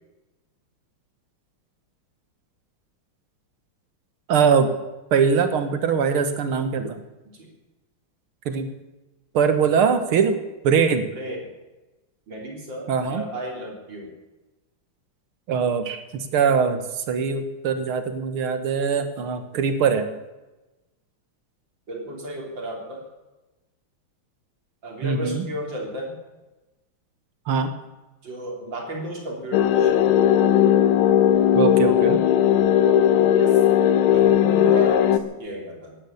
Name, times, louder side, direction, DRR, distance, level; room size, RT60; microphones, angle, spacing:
voice 1, 4.3-4.7 5.1-7.0 8.5-8.7 9.3-10.4 10.6-11.0 12.9-13.3 15.5-20.1 25.0-25.4 27.5-27.7 31.5-32.2, right 6 dB, 80° right, 9 dB, 2.2 m, -22 dB
voice 2, 11.1-11.5 12.3-14.1 21.9-23.0 24.8-26.2 28.2-30.1 32.7-33.6 34.1-36.0, equal, 60° right, 0 dB, 4.2 m, -33 dB
sound 1, 29.5-35.2, left 10 dB, 75° left, 1.6 m, -17 dB
17.5 x 11.5 x 7.1 m, 1.1 s
omnidirectional pair, 2.3 m